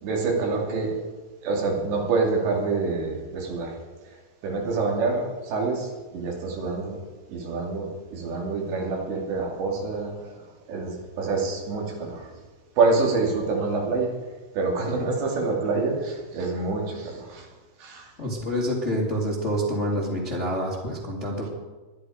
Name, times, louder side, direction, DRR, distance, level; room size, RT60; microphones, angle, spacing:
voice 1, 0.0-1.0 1.4-3.7 4.0-4.2 4.4-7.0 7.3-10.3 10.7-12.3 12.8-14.1 14.5-17.5 17.8-18.1, right 3 dB, 85° right, -1 dB, 5.0 m, -26 dB
voice 2, 18.2-21.5, equal, 25° left, -3 dB, 1.5 m, -27 dB
21.5 x 11.0 x 5.1 m, 1.3 s
omnidirectional pair, 4.9 m